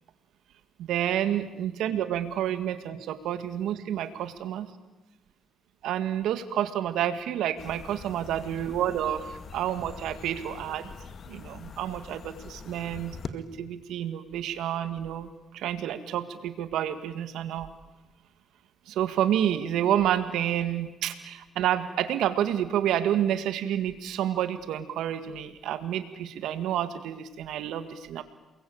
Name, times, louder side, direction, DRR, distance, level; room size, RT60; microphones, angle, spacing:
voice 1, 0.8-4.7 5.8-10.9 11.3-17.7 18.9-28.2, right 10 dB, 85° right, 10 dB, 2.0 m, -29 dB
sound 1, 7.6-13.3, left 6 dB, 50° left, 2.0 m, -44 dB
29.0 x 22.0 x 8.8 m, 1.0 s
cardioid pair, 90°, 0 cm